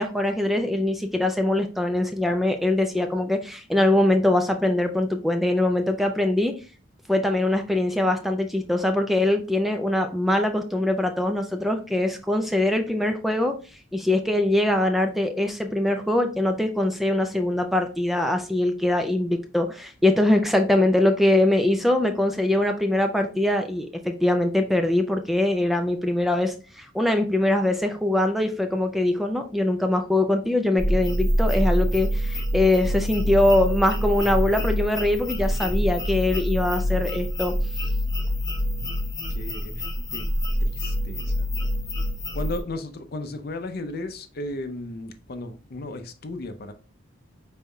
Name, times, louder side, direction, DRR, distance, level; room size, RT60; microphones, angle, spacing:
voice 1, 0.0-6.6 7.1-13.6 13.9-37.6, left 1 dB, ahead, 0.4 m, -22 dB
sound 1, 30.8-42.6, equal, 20° left, 0.9 m, -26 dB
voice 2, 39.3-39.9 40.1-40.3 40.6-41.5 42.3-46.7, left 2 dB, 50° left, 0.6 m, -35 dB
5.3 x 4.2 x 2.3 m
head